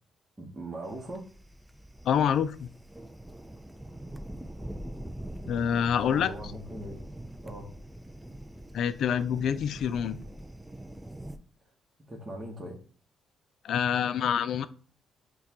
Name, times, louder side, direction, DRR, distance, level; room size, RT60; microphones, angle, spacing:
voice 1, 0.4-1.2 6.0-7.0 7.4-7.7 12.1-12.8, right 1 dB, 25° right, -3 dB, 1.0 m, -40 dB
sound 1, 0.8-11.4, right 1 dB, 5° right, 0.4 m, -43 dB
voice 2, 2.0-2.7 5.5-6.3 8.7-10.2 13.6-14.7, left 8 dB, 70° left, 14 dB, 0.3 m, -26 dB
6.4 x 2.3 x 2.8 m, 0.41 s
cardioid pair, 90°, 0 cm